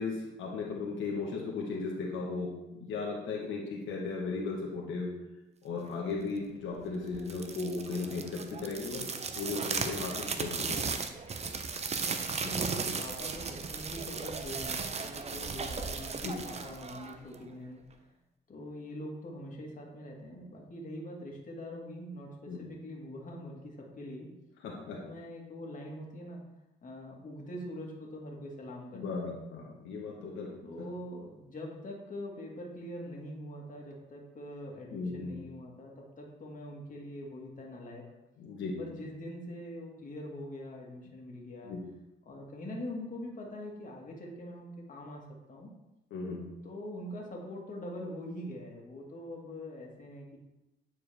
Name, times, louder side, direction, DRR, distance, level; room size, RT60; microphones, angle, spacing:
voice 1, 0.0-5.1 5.6-9.1 9.3-10.9 16.2-16.3 22.5-22.6 24.6-25.0 28.9-30.5 34.9-35.3 38.4-38.8 41.6-41.8 46.1-46.4, left 4 dB, 80° left, -3 dB, 1.3 m, -36 dB
sound 1, 7.1-17.5, right 5 dB, 35° right, 0.6 m, -36 dB
voice 2, 12.4-17.8 18.5-24.3 25.0-26.4 26.8-29.3 30.6-38.0 38.8-41.7 42.2-45.2 45.5-45.7 46.6-50.4, left 1 dB, 40° left, -1 dB, 1.8 m, -43 dB
9.0 x 4.6 x 3.4 m, 0.98 s
cardioid pair, 90°, 20 cm